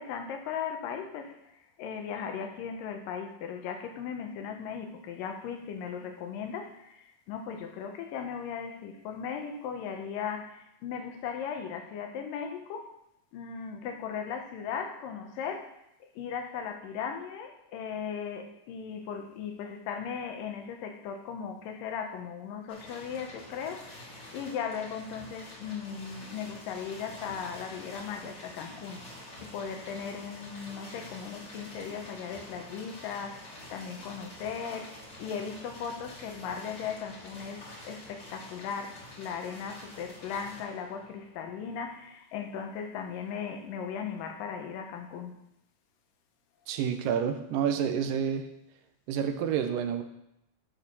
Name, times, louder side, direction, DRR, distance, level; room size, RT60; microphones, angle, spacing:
voice 1, 0.0-1.5 1.8-12.9 13.3-15.7 16.2-29.1 29.4-45.4, left 7 dB, 80° left, 5 dB, 2.6 m, -37 dB
sound 1, 22.7-42.1, left 1 dB, 30° left, 2.3 m, -48 dB
voice 2, 46.7-48.5 49.1-50.0, right 8 dB, 75° right, 7 dB, 2.4 m, -29 dB
13.0 x 4.7 x 5.4 m, 0.82 s
omnidirectional pair, 4.0 m